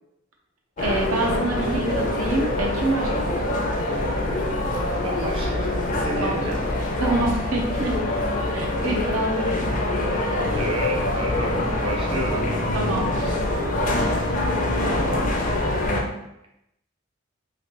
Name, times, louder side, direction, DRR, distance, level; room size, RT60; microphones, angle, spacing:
sound 1, 0.8-16.0, left 1 dB, 40° left, 0.5 m, -25 dB
voice 1, 0.8-3.2 6.2-6.4 7.0-8.0 8.5-9.6 12.7-13.4, right 2 dB, 90° right, 0 dB, 0.8 m, -26 dB
voice 2, 5.0-6.6 9.7-9.8 10.6-12.4 14.8-15.3, equal, 25° right, -1 dB, 0.4 m, -30 dB
3.1 x 2.8 x 3.0 m, 0.86 s
head